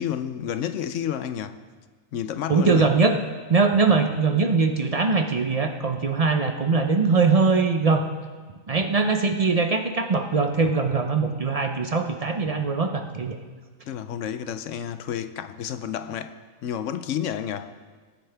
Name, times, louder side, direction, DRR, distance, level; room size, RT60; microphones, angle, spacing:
voice 1, 0.0-1.6 2.1-2.9 13.8-16.3 16.6-17.7, left 9 dB, 70° left, 0.9 m, -30 dB
voice 2, 2.5-3.2 3.5-8.1 8.7-13.4, right 4 dB, 45° right, 0.5 m, -21 dB
20.5 x 9.2 x 3.4 m
omnidirectional pair, 1.4 m